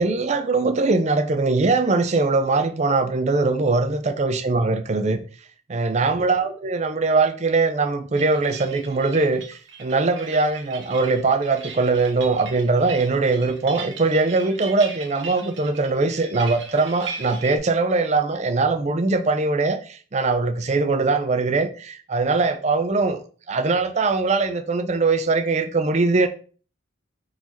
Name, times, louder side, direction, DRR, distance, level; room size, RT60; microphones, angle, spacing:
voice 1, 0.0-5.2 5.7-23.2 23.5-26.3, right 3 dB, 35° right, 0.5 m, -21 dB
sound 1, 8.1-17.6, right 5 dB, 85° right, 0.8 m, -39 dB
3.9 x 3.0 x 4.0 m
head